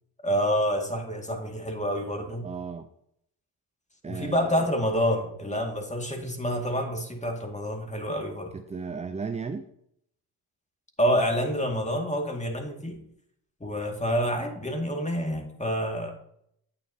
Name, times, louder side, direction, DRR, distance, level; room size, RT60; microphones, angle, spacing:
voice 1, 0.2-2.4 4.1-8.5 11.0-13.0 13.6-16.1, equal, 15° left, 2 dB, 2.2 m, -28 dB
voice 2, 2.4-2.9 4.0-4.7 8.5-9.7, right 5 dB, 15° right, 8 dB, 0.5 m, -35 dB
9.4 x 8.7 x 2.8 m, 0.72 s
supercardioid pair, 60°, 49 cm